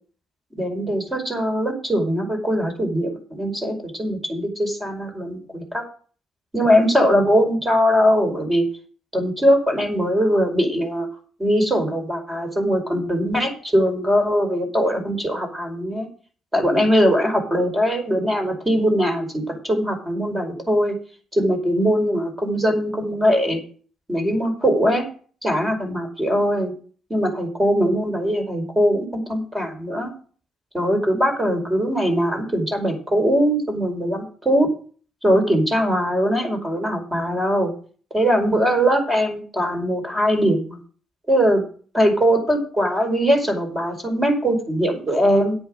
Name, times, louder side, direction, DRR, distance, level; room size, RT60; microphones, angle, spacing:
voice 1, 0.6-5.8 6.5-8.6 9.1-11.1 11.4-16.1 16.5-21.0 21.3-23.6 24.1-25.0 25.4-26.7 27.1-30.1 30.7-34.7 35.2-37.7 38.1-40.8 41.3-41.6 41.9-45.6, equal, 20° right, 4 dB, 5.0 m, -21 dB
10.0 x 8.8 x 6.4 m, 0.42 s
cardioid pair, 90°, 0 cm